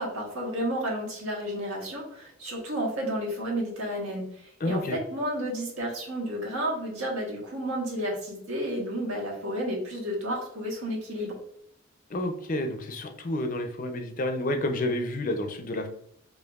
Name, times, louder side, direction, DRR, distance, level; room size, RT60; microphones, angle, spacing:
voice 1, 0.0-11.3, equal, 80° right, -1 dB, 1.3 m, -31 dB
voice 2, 4.6-5.0 12.1-15.9, left 1 dB, 40° left, 6 dB, 0.4 m, -29 dB
4.5 x 2.8 x 2.3 m, 0.68 s
head